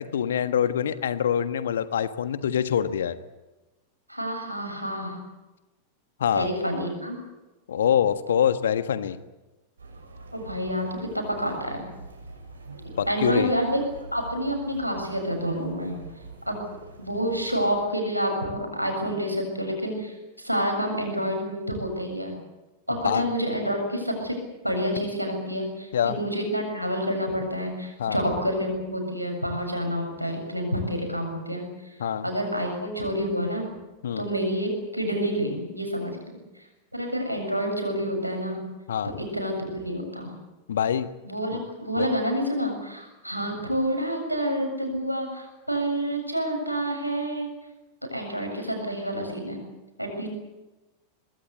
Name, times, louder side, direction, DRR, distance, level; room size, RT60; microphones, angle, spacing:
voice 1, 0.0-3.2 6.2-6.5 7.7-9.2 13.0-13.5 23.0-23.3 25.9-26.2 28.0-28.2 32.0-32.3 34.0-34.2 38.9-39.1 40.7-41.1 41.5-41.6 42.0-42.1, left 9 dB, 65° left, 11 dB, 1.4 m, -25 dB
voice 2, 4.1-5.2 6.3-7.2 10.3-11.9 13.1-13.8 14.1-16.0 16.5-16.6 17.0-22.3 22.9-24.3 24.6-31.9 32.2-33.7 34.2-36.2 36.9-38.6 39.2-40.3 41.2-47.5 48.1-49.6 50.0-50.3, equal, 90° right, 2 dB, 7.3 m, -28 dB
sound 1, 9.8-17.7, right 2 dB, 75° right, 6.6 m, -45 dB
24.5 x 21.0 x 8.5 m, 1.1 s
figure-of-eight pair, 90°, 0 cm